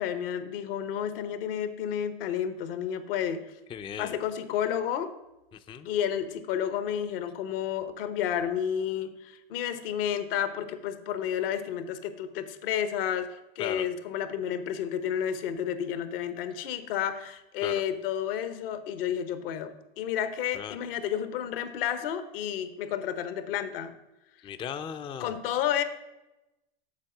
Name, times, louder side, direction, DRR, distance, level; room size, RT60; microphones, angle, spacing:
voice 1, 0.0-3.4 4.0-5.1 5.8-23.9 25.2-25.8, left 9 dB, 70° left, 10 dB, 1.0 m, -31 dB
voice 2, 3.7-4.2 5.5-5.9 13.6-13.9 17.6-17.8 20.5-20.8 24.4-25.4, left 8 dB, 20° left, 10 dB, 0.4 m, -37 dB
7.4 x 4.3 x 6.5 m, 0.96 s
hypercardioid pair, 105°, 29 cm